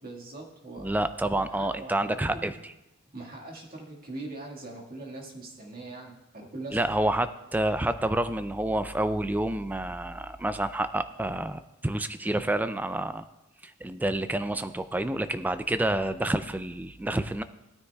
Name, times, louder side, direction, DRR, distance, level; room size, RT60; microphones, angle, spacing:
voice 1, 0.0-0.9 1.3-2.5 3.1-7.0, right 2 dB, 45° right, -2 dB, 1.7 m, -42 dB
voice 2, 0.8-2.5 6.7-13.2 13.6-17.4, right 1 dB, 10° right, 11 dB, 0.3 m, -28 dB
17.0 x 9.6 x 2.3 m, 0.95 s
head